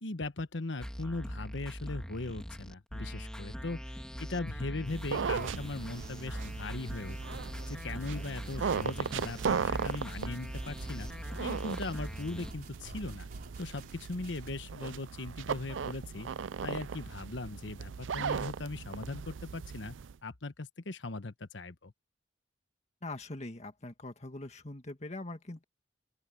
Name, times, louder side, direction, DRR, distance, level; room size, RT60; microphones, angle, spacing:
voice 1, 0.0-7.4 7.7-11.1 11.4-13.3 13.6-16.3 16.6-20.0 20.2-21.9, left 2 dB, 75° left, 1.2 m, -39 dB
sound 1, 0.8-12.5, equal, 5° left, 2.4 m, -42 dB
sound 2, 4.9-20.1, right 6 dB, 90° right, 0.5 m, -37 dB
sound 3, 5.4-14.5, right 1 dB, 50° right, 5.1 m, -51 dB
voice 2, 23.0-25.6, left 2 dB, 35° left, 1.9 m, -42 dB
open air
head